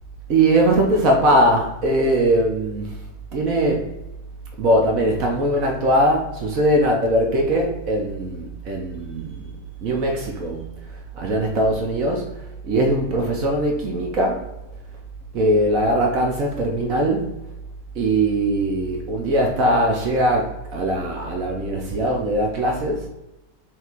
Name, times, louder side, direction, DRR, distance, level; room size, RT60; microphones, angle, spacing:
voice 1, 0.3-3.0 3.3-3.9 4.6-9.5 9.8-14.4 15.3-17.4 17.9-23.1, right 1 dB, 40° right, 1 dB, 0.6 m, -21 dB
5.6 x 2.1 x 2.9 m, 0.95 s
figure-of-eight pair, 90°, 0 cm